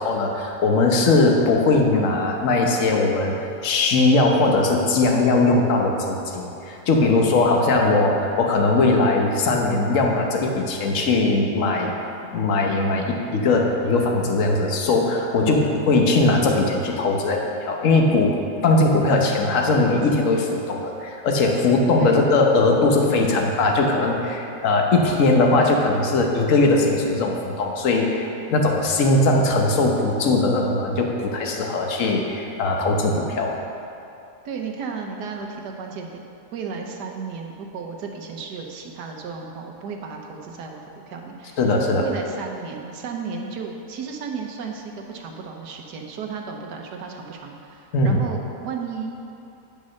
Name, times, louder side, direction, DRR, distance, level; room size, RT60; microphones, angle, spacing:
voice 1, 0.0-3.3 3.6-11.9 12.3-18.3 18.6-33.5 41.6-42.0 47.9-48.2, left 2 dB, 55° left, 1 dB, 1.3 m, -20 dB
voice 2, 15.4-15.7 22.0-22.2 34.4-41.6 42.0-49.1, right 5 dB, 85° right, 2 dB, 1.5 m, -34 dB
10.0 x 5.3 x 6.3 m, 2.7 s
omnidirectional pair, 1.7 m